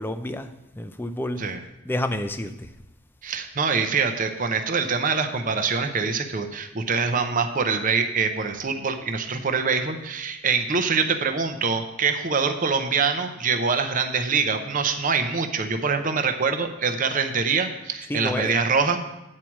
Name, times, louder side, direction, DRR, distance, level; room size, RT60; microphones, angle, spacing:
voice 1, 0.0-1.4 1.8-2.7 18.1-18.6, left 1 dB, 10° left, 9 dB, 0.4 m, -29 dB
voice 2, 3.2-19.0, right 5 dB, 40° right, 6 dB, 0.6 m, -24 dB
8.5 x 4.6 x 7.3 m, 0.94 s
head